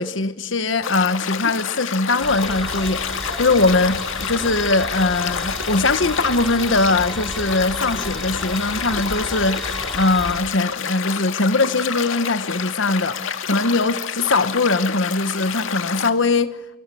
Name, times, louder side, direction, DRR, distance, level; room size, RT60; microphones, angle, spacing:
voice 1, 0.0-16.6, left 3 dB, 70° left, 1.3 m, -21 dB
sound 1, 0.8-16.1, left 6 dB, 90° left, 2.0 m, -28 dB
sound 2, 2.2-10.4, equal, ahead, 3.3 m, -33 dB
29.5 x 25.0 x 7.8 m
head